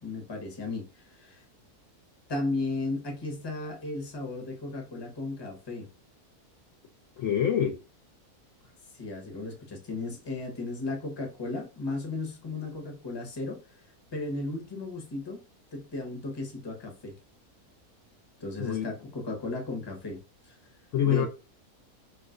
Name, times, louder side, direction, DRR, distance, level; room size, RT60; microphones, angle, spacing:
voice 1, 0.0-1.4 2.3-5.9 8.9-13.6 14.1-15.4 15.7-17.1 18.4-20.6 21.0-21.3, left 2 dB, 25° left, 0.6 m, -35 dB
voice 2, 7.2-7.8 18.6-18.9 20.9-21.3, left 9 dB, 65° left, 0.8 m, -25 dB
2.4 x 2.3 x 3.6 m
omnidirectional pair, 1.6 m